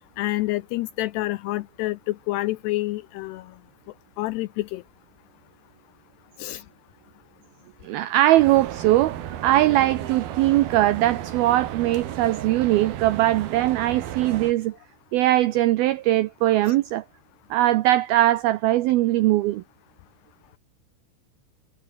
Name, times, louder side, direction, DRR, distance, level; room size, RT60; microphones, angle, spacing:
voice 1, 0.2-3.5 4.2-4.8 6.4-6.6, left 18 dB, 80° left, 2.4 m, -28 dB
voice 2, 7.8-14.8 15.1-17.0 17.5-19.6, right 15 dB, 85° right, 2.1 m, -20 dB
sound 1, 8.4-14.5, right 11 dB, 60° right, 3.4 m, -34 dB
omnidirectional pair, 5.4 m